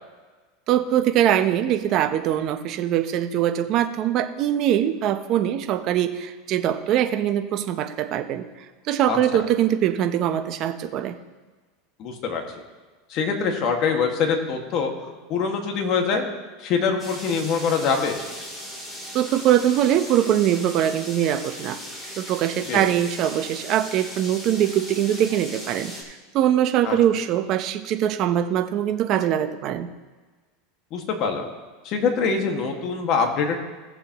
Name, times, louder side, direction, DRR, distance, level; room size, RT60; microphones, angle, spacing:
voice 1, 0.7-8.5 8.9-11.2 19.1-21.8 22.2-29.9, right 11 dB, 45° right, 8 dB, 0.9 m, -22 dB
voice 2, 12.0-12.4 13.1-16.3 16.6-18.2 22.7-22.9 26.8-27.0 30.9-31.5 31.8-33.6, left 5 dB, 50° left, 3 dB, 1.9 m, -24 dB
sound 1, 17.0-26.0, equal, 20° left, 3.1 m, -38 dB
17.5 x 7.2 x 3.1 m, 1.3 s
supercardioid pair, 120°, 0 cm